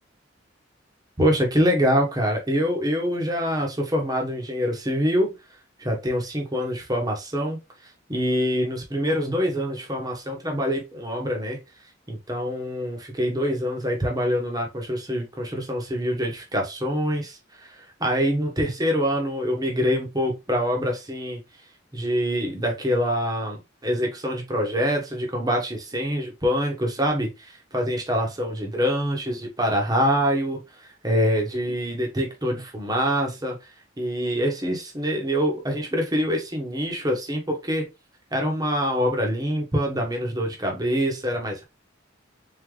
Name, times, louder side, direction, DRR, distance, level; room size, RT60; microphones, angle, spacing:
voice 1, 1.2-5.3 5.8-7.6 8.1-11.6 12.1-21.4 21.9-33.6 34.0-37.9 38.3-41.6, equal, 20° right, 1.4 m, -25 dB
4.2 x 4.0 x 3.1 m
head